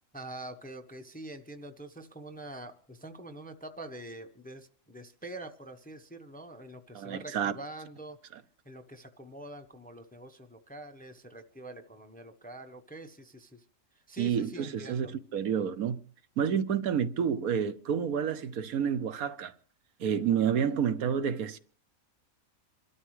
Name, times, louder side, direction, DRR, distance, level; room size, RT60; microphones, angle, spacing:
voice 1, 0.1-8.2 8.6-13.6 14.1-15.1, right 2 dB, 10° left, 0.7 m, -45 dB
voice 2, 6.9-7.6 8.3-8.4 14.2-16.0 16.4-19.5 20.0-21.6, right 8 dB, 75° right, 1.3 m, -29 dB
27.0 x 13.0 x 3.2 m
omnidirectional pair, 1.5 m